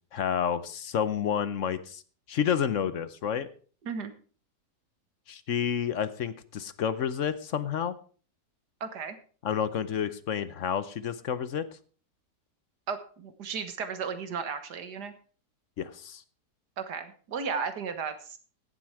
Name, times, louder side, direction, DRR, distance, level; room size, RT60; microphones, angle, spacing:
voice 1, 0.1-2.0 2.3-3.5 5.3-8.0 9.4-11.6 15.8-16.2, left 8 dB, 60° left, 14 dB, 1.0 m, -30 dB
voice 2, 8.8-9.2 12.9-15.1 16.8-18.4, right 5 dB, 85° right, 9 dB, 1.9 m, -34 dB
16.0 x 7.6 x 4.7 m, 0.41 s
omnidirectional pair, 1.7 m